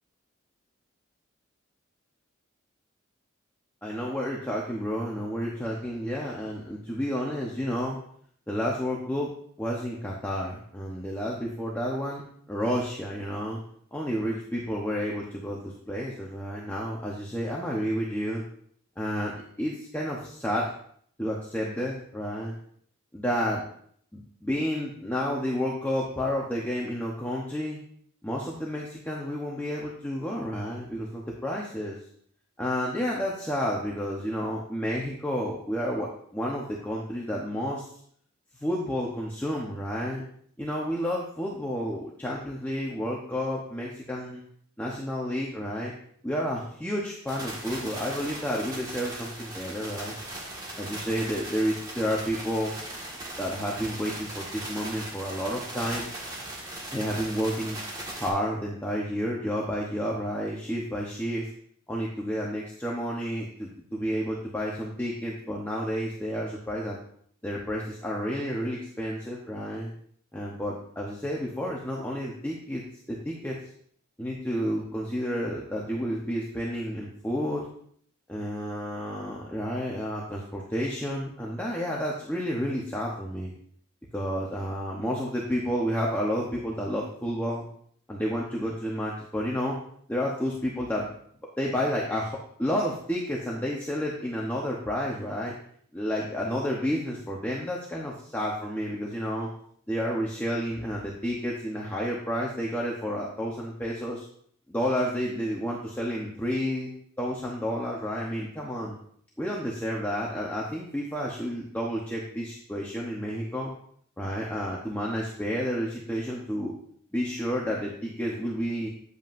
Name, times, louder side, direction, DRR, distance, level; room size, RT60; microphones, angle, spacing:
voice 1, 3.8-8.0 8.5-9.3 9.6-12.2 12.5-13.6 13.9-18.4 19.0-20.7 21.2-22.5 23.1-23.6 24.1-27.8 28.2-32.0 32.6-37.9 38.6-40.2 40.6-44.4 44.8-45.9 46.2-50.1 50.8-52.7 53.4-56.1 56.9-57.8 58.2-61.5 61.9-67.0 67.4-69.9 70.3-72.8 73.1-73.6 74.2-77.7 78.3-83.5 84.1-87.6 88.1-89.8 90.1-91.1 91.6-95.5 95.9-99.5 99.9-104.3 104.7-106.9 107.2-109.0 109.4-113.7 114.2-116.8 117.1-118.9, equal, 10° left, -3 dB, 0.9 m, -30 dB
sound 1, 47.3-58.3, right 1 dB, 20° right, 1.7 m, -38 dB
9.2 x 8.1 x 2.6 m, 0.62 s
head